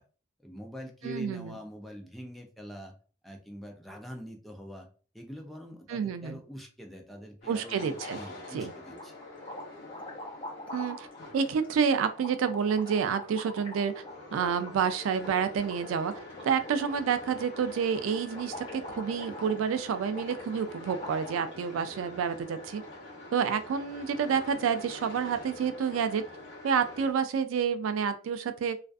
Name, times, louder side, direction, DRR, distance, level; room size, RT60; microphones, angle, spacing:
voice 1, 0.4-2.9 3.2-4.9 5.1-9.1, equal, ahead, 1 dB, 0.3 m, -44 dB
voice 2, 1.0-1.5 5.9-6.4 7.5-8.2 8.5-8.7 10.7-11.1 11.3-14.0 14.3-22.8 23.3-26.2 26.6-28.8, right 6 dB, 80° right, 11 dB, 0.3 m, -29 dB
sound 1, 7.4-27.1, left 2 dB, 60° left, 0.9 m, -46 dB
sound 2, 7.9-8.6 8.9-21.6, left 2 dB, 25° left, 0.8 m, -45 dB
2.4 x 2.4 x 2.3 m, 0.39 s
head